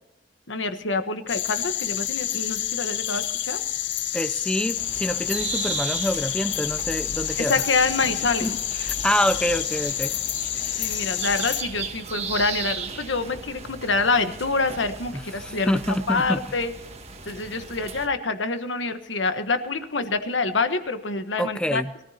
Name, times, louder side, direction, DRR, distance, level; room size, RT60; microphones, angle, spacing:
voice 1, 0.5-3.6 7.4-8.5 10.8-15.8 16.1-16.7 17.3-21.8, left 3 dB, 90° left, 1.3 m, -26 dB
sound 1, 1.3-11.6, left 12 dB, 70° left, 0.8 m, -28 dB
voice 2, 4.1-7.6 8.4-8.6 8.9-10.1 15.1-16.4 21.4-21.9, equal, 5° left, 0.5 m, -26 dB
sound 2, 4.7-18.1, right 5 dB, 35° right, 1.4 m, -36 dB
23.0 x 14.0 x 2.9 m
head